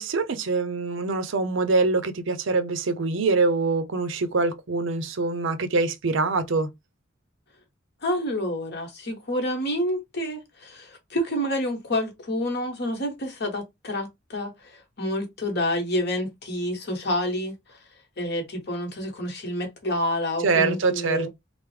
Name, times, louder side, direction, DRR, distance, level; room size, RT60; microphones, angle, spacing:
voice 1, 0.0-6.7 20.4-21.3, right 3 dB, 75° right, 0.5 m, -24 dB
voice 2, 8.0-17.8 18.2-21.3, left 1 dB, 55° left, 1.1 m, -28 dB
3.3 x 2.0 x 3.1 m
head